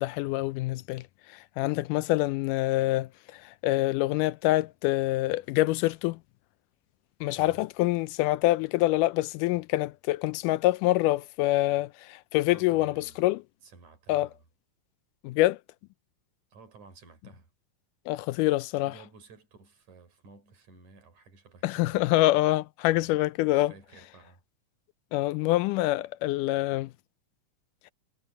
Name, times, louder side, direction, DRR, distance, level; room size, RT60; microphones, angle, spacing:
voice 1, 0.0-6.2 7.2-13.4 14.1-14.3 15.2-15.6 18.1-18.9 21.6-23.7 25.1-26.9, left 17 dB, 85° left, 2.1 m, -26 dB
voice 2, 12.5-13.3 13.6-14.4 16.5-17.5 18.8-22.2 22.9-24.4, right 4 dB, 65° right, 5.3 m, -54 dB
omnidirectional pair, 3.7 m